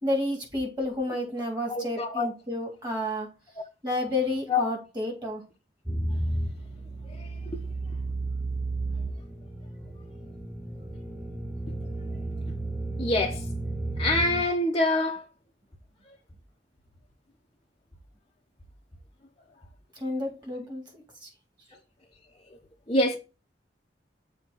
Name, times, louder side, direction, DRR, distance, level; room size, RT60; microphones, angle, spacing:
voice 1, 0.0-3.3 3.8-5.4 8.2-8.3 19.9-21.3, left 1 dB, 25° right, 3.3 m, -31 dB
voice 2, 1.7-2.3 4.5-4.6 7.2-7.6 13.0-13.4 14.0-15.3 22.9-23.2, left 2 dB, 25° left, 1.0 m, -26 dB
sound 1, 5.9-14.4, right 2 dB, 5° right, 0.8 m, -33 dB
7.3 x 3.2 x 6.1 m
head